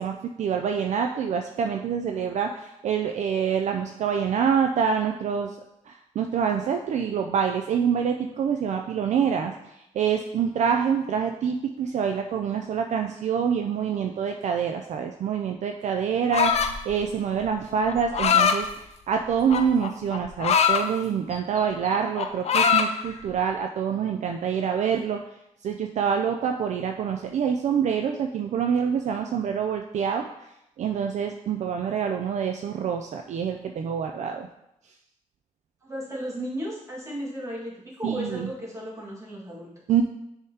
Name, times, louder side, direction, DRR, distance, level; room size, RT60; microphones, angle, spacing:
voice 1, 0.0-5.6 5.9-25.2 25.6-30.3 30.8-34.5 38.0-38.5 39.9-40.0, right 7 dB, 60° right, 4 dB, 0.4 m, -26 dB
sound 1, 16.3-16.9 17.9-18.6 19.5-20.8 21.3-21.6 21.9-22.9, left 7 dB, 55° left, 0.5 m, -22 dB
voice 2, 35.8-39.7, equal, 20° right, -6 dB, 1.7 m, -35 dB
9.8 x 3.6 x 2.8 m, 0.83 s
wide cardioid pair, 170°, 14 cm